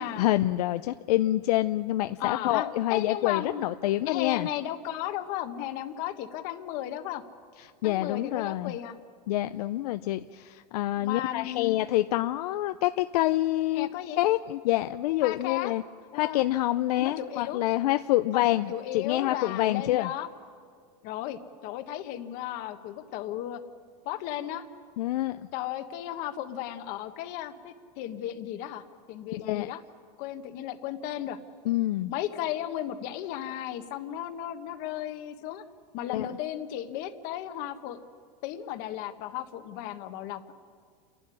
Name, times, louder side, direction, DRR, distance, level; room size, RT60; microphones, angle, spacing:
voice 1, 0.2-4.5 7.6-8.8 9.3-13.9 14.2-15.8 16.1-20.1 25.0-25.5 29.3-29.7 31.7-32.1 36.1-36.3, left 15 dB, 70° left, 10 dB, 0.5 m, -27 dB
voice 2, 2.2-3.6 4.1-7.2 7.8-8.9 11.0-11.9 13.7-14.2 15.2-15.7 16.1-16.4 17.0-17.6 18.3-20.3 21.0-23.6 24.0-24.7 25.5-29.8 30.2-31.4 32.1-35.6 35.9-38.0 38.4-40.4, left 12 dB, 45° left, 9 dB, 1.3 m, -35 dB
29.0 x 11.5 x 9.8 m, 2.1 s
supercardioid pair, 160°, 21 cm